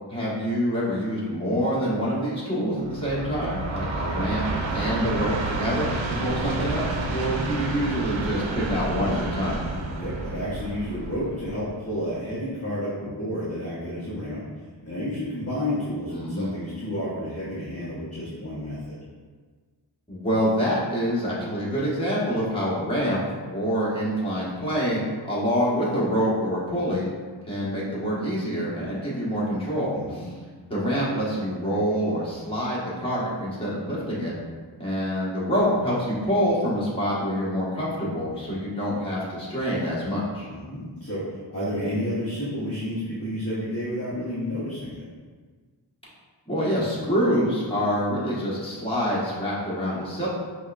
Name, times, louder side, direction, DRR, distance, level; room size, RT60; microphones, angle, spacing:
voice 1, 0.1-9.6 16.1-16.5 20.1-27.1 27.4-30.3 30.7-34.3 34.8-40.5 46.5-50.3, equal, 10° left, -8 dB, 1.3 m, -26 dB
Train, 2.8-12.0, right 2 dB, 90° right, 0.5 m, -30 dB
voice 2, 9.9-19.0 29.9-30.3 38.3-38.5 40.5-45.0, equal, 35° left, -11 dB, 0.9 m, -31 dB
5.4 x 2.3 x 2.4 m, 1.5 s
wide cardioid pair, 55°, 45 cm